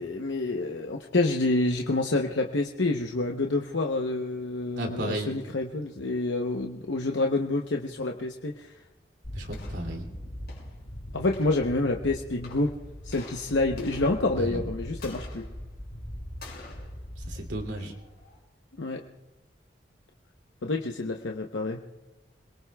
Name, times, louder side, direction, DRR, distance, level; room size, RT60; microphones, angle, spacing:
voice 1, 0.0-8.7 11.1-12.7 13.0-15.4 18.8-19.0 20.6-21.8, left 2 dB, 80° left, 2 dB, 0.8 m, -28 dB
voice 2, 4.8-5.3 9.3-10.0 14.3-14.6 17.3-17.9, right 1 dB, 75° right, 1 dB, 2.8 m, -34 dB
sound 1, 9.2-18.4, left 1 dB, 55° left, 5.9 m, -40 dB
27.0 x 22.0 x 2.3 m, 1.1 s
head